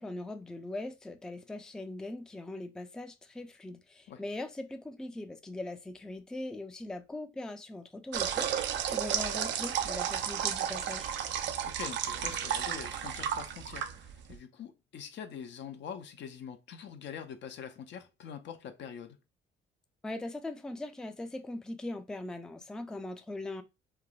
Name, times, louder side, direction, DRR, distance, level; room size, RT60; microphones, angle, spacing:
voice 1, 0.0-11.1 20.0-23.6, left 2 dB, 5° left, 0.3 m, -40 dB
sound 1, 8.1-14.4, right 9 dB, 70° right, 0.4 m, -33 dB
voice 2, 11.6-19.2, left 7 dB, 65° left, 0.5 m, -44 dB
3.3 x 2.0 x 2.3 m
cardioid pair, 90°, 20 cm